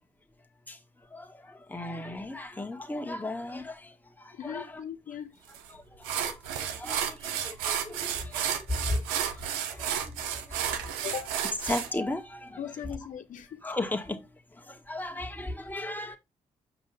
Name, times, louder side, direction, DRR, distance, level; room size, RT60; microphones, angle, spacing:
voice 1, 1.1-3.9 4.2-4.8 5.7-5.8 6.2-6.4 6.8-9.0 9.7-9.9 10.2-11.0 11.7-12.6 13.6-14.2 14.7-16.2, left 2 dB, 10° left, 1.7 m, -35 dB
voice 2, 4.3-5.3 11.0-11.3 12.6-13.6, left 8 dB, 60° left, 0.7 m, -38 dB
sound 1, 5.5-5.7 6.0-11.9, right 9 dB, 90° right, 0.9 m, -32 dB
7.4 x 5.3 x 3.3 m
hypercardioid pair, 50°, 15 cm